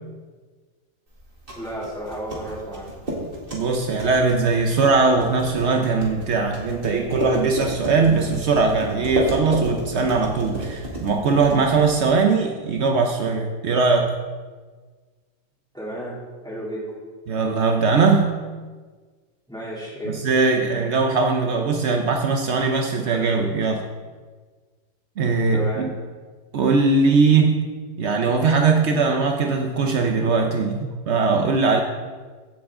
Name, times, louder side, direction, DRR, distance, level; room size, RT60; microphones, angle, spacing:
sound 1, 1.2-12.2, equal, 30° right, 2.2 m, -32 dB
voice 1, 1.5-2.9 15.7-16.2 16.4-16.9 19.5-20.2 25.5-25.9, right 1 dB, ahead, -7 dB, 3.5 m, -32 dB
voice 2, 3.5-14.1 17.3-18.4 20.0-23.9 25.2-25.9 26.5-27.7 28.0-31.8, right 4 dB, 75° right, 3 dB, 0.6 m, -20 dB
15.5 x 7.1 x 3.7 m, 1.5 s
omnidirectional pair, 2.1 m